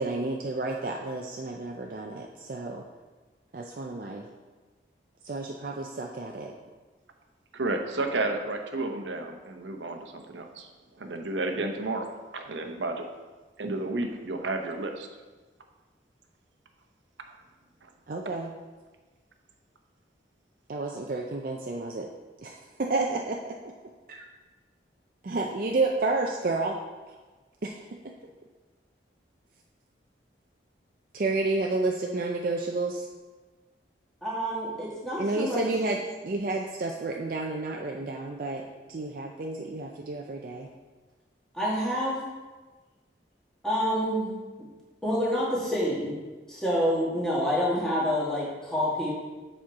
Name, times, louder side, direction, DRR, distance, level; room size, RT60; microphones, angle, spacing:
voice 1, 0.0-2.8 3.5-4.2 5.2-6.5 18.1-18.5 20.7-22.1 22.4-23.7 25.2-26.8 27.6-27.8 31.1-33.1 35.2-36.0 36.2-40.7, right 3 dB, 50° right, 0 dB, 0.5 m, -30 dB
voice 2, 7.5-10.7 11.0-13.1 13.6-15.1, right 2 dB, 85° right, 4 dB, 0.8 m, -31 dB
voice 3, 34.2-35.6 41.5-42.2 43.6-44.3 45.0-46.1 46.5-49.1, equal, 5° left, -7 dB, 1.7 m, -27 dB
7.5 x 4.4 x 4.6 m, 1.3 s
head